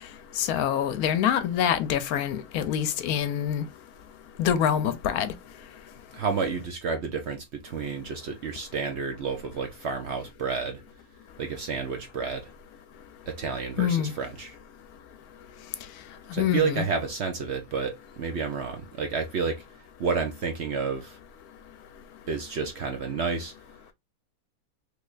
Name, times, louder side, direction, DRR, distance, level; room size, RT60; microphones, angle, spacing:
voice 1, 0.4-3.6 4.4-5.3 13.8-14.1 16.4-16.8, left 9 dB, 75° left, 1.0 m, -25 dB
voice 2, 6.1-10.8 11.4-12.5 13.3-14.6 16.3-19.6 20.0-21.2 22.3-23.5, right 5 dB, 60° right, 0.7 m, -30 dB
3.3 x 3.1 x 2.3 m
omnidirectional pair, 1.6 m